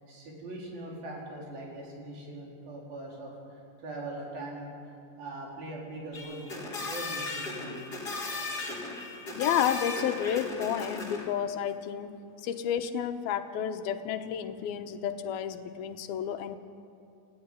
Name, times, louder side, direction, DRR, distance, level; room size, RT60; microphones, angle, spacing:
voice 1, 0.1-4.8 5.2-7.9, right 1 dB, 75° right, -2 dB, 6.2 m, -41 dB
sound 1, 6.1-11.3, left 3 dB, 25° left, 3.8 m, -36 dB
voice 2, 9.3-12.1 12.4-16.6, left 9 dB, 85° left, 7 dB, 3.0 m, -31 dB
28.5 x 14.0 x 9.8 m, 2.6 s
omnidirectional pair, 4.2 m